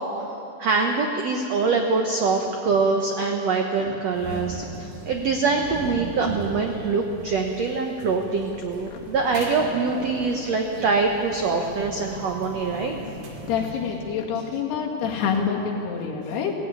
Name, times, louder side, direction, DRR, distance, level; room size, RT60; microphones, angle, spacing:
voice 1, 0.0-13.0, right 4 dB, 80° right, 3 dB, 1.5 m, -24 dB
sound 1, 4.1-14.3, right 2 dB, 55° right, 3.9 m, -38 dB
voice 2, 13.5-16.5, left 6 dB, 80° left, -1 dB, 4.2 m, -27 dB
18.0 x 16.0 x 9.6 m, 2.9 s
omnidirectional pair, 4.6 m